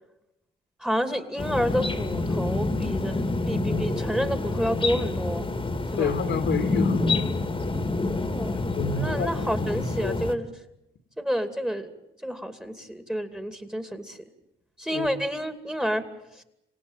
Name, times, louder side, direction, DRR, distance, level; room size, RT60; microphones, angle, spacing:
voice 1, 0.8-5.5 5.9-6.1 8.1-10.5 11.2-11.9 12.2-14.2 14.8-16.0 16.3-16.4, equal, 5° right, 9 dB, 2.6 m, -29 dB
sound 1, 1.4-10.3, left 2 dB, 25° left, 2.2 m, -27 dB
voice 2, 6.0-7.3 8.7-10.2 14.9-15.1, left 5 dB, 65° left, 8 dB, 2.5 m, -29 dB
27.0 x 17.5 x 9.1 m, 0.87 s
cardioid pair, 90°, 20 cm